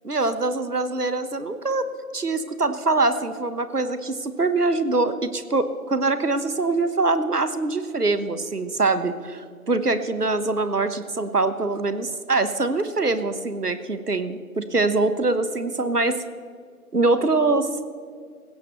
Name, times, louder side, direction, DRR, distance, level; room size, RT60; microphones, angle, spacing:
voice 1, 0.0-1.9 2.1-9.1 9.7-16.2 16.9-17.9, right 3 dB, 80° right, 11 dB, 1.3 m, -23 dB
18.5 x 16.5 x 3.1 m, 2.1 s
figure-of-eight pair, 175°, 45 cm